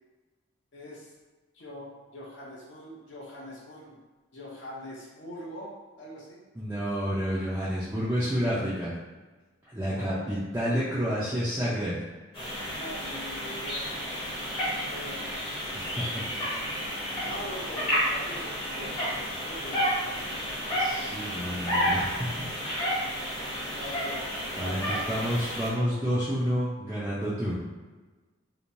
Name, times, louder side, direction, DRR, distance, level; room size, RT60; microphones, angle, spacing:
voice 1, 0.7-1.1 1.5-4.0 4.3-6.4 9.8-10.3 12.7-13.9 14.7-15.5 17.2-20.1 20.7-20.9 23.8-25.1, equal, 55° left, -5 dB, 0.7 m, -43 dB
voice 2, 6.5-8.9 9.7-12.0 15.7-16.2 20.7-22.3 24.6-27.6, equal, 10° right, -10 dB, 0.4 m, -29 dB
sound 1, 12.3-25.7, equal, 25° left, 0.8 m, -31 dB
3.0 x 2.1 x 2.6 m, 1.3 s
head